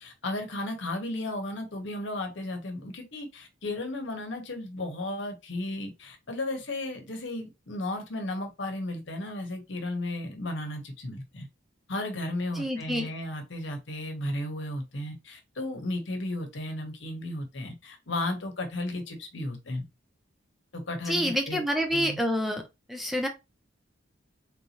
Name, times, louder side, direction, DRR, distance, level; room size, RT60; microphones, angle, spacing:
voice 1, 0.0-11.5 11.9-19.9 20.7-21.6 21.9-22.2, left 1 dB, 65° left, 1.0 m, -34 dB
voice 2, 12.5-13.1 21.1-22.6 22.9-23.3, equal, ahead, 0.4 m, -27 dB
3.6 x 2.7 x 2.8 m
head